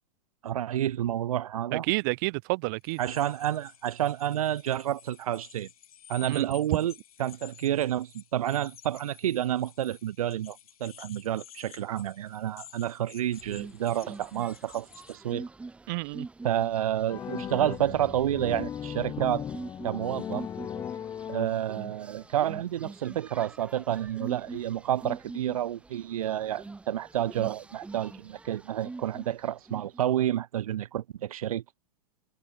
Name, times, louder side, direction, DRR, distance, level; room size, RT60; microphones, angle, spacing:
voice 1, 0.4-1.8 3.0-5.7 6.1-6.9 7.2-15.4 16.4-19.4 19.8-20.5 21.3-31.6, right 11 dB, 85° right, 1.4 m, -29 dB
voice 2, 1.7-3.0 6.2-6.8 15.9-16.3, right 28 dB, 35° right, 0.4 m, -30 dB
sound 1, 2.8-15.2, left 10 dB, 90° left, 3.9 m, -52 dB
sound 2, 13.3-30.0, right 3 dB, 5° right, 1.6 m, -45 dB
sound 3, 17.1-22.0, left 9 dB, 15° left, 1.7 m, -37 dB
supercardioid pair, 155°, 18 cm